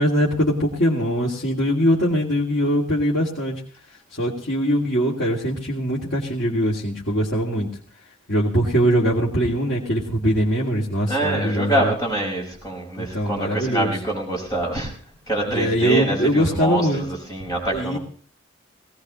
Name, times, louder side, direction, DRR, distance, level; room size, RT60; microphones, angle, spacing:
voice 1, 0.0-3.6 4.2-7.7 8.3-11.9 13.0-13.9 15.5-17.1 17.7-18.0, equal, 70° left, -5 dB, 2.6 m, -22 dB
voice 2, 11.1-14.9 15.3-18.0, right 1 dB, 20° left, -1 dB, 5.4 m, -25 dB
20.5 x 18.0 x 3.2 m, 0.44 s
head